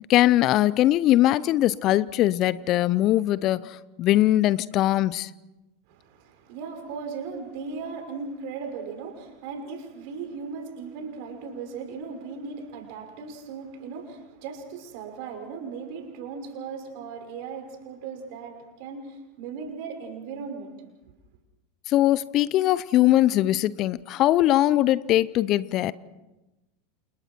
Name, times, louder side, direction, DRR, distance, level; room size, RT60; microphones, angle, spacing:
voice 1, 0.1-5.3 21.9-25.9, left 14 dB, 45° left, 0.7 m, -21 dB
voice 2, 5.9-20.7, right 5 dB, 55° right, 5.9 m, -37 dB
29.0 x 28.5 x 4.6 m
figure-of-eight pair, 85°, 0 cm